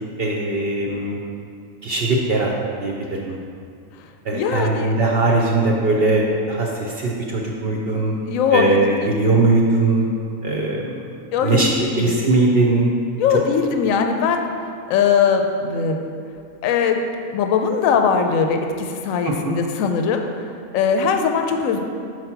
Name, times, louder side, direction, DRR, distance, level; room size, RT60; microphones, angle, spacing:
voice 1, 0.2-1.2 1.8-2.5 2.8-3.4 4.2-8.1 8.5-10.0 10.4-11.0 11.4-12.9 19.2-19.6, right 2 dB, 55° right, -1 dB, 0.6 m, -20 dB
voice 2, 4.3-4.9 8.3-8.8 11.3-12.2 13.2-14.5 14.9-16.0 16.6-17.0 17.3-20.3 20.7-21.8, left 6 dB, 70° left, 5 dB, 0.9 m, -20 dB
5.1 x 4.6 x 5.8 m, 2.4 s
omnidirectional pair, 1.6 m